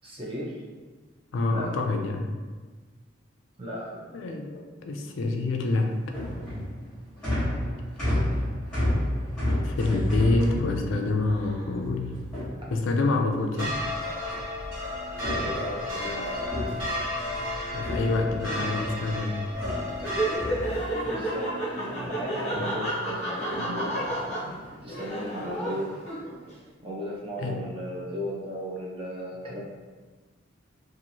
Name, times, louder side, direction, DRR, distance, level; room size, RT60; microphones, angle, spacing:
voice 1, 0.0-0.6 1.5-1.7 3.6-4.1 15.2-16.5 21.0-23.9 24.8-25.9 26.8-29.6, equal, 25° right, -4 dB, 0.5 m, -35 dB
voice 2, 1.3-2.3 4.1-5.9 9.6-12.2 12.7-13.8 17.7-19.4 27.4-27.6, left 2 dB, 80° left, 3 dB, 0.4 m, -27 dB
sound 1, 5.8-13.2 14.3-14.8 15.1-17.5 17.8-19.1 19.6-21.2 21.6-22.1 22.4-22.8 23.5-23.9 24.4-24.7, left 1 dB, 5° left, 1.1 m, -32 dB
sound 2, 13.6-20.4, left 1 dB, 85° right, 1.4 m, -32 dB
Laughter, 19.9-26.5, right 1 dB, 35° left, 0.6 m, -31 dB
2.9 x 2.5 x 2.7 m, 1.4 s
head